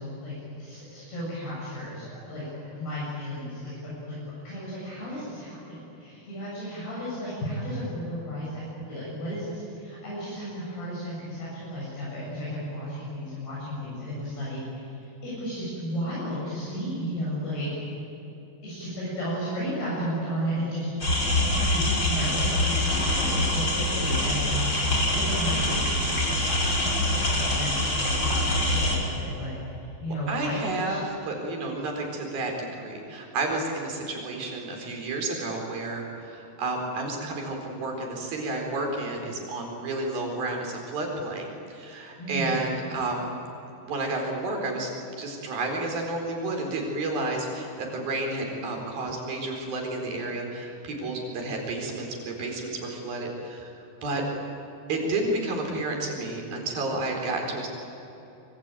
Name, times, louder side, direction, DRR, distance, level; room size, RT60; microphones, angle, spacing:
voice 1, 0.0-14.9 15.2-17.7 18.6-20.9 21.7-31.0 42.2-42.6, equal, 65° left, -7 dB, 9.3 m, -34 dB
sound 1, 21.0-29.0, left 1 dB, 25° left, 5.4 m, -25 dB
voice 2, 30.3-43.3 43.8-44.9 45.2-54.2 54.9-57.7, right 2 dB, 60° right, 2 dB, 6.1 m, -31 dB
25.0 x 25.0 x 9.2 m, 3.0 s
omnidirectional pair, 5.0 m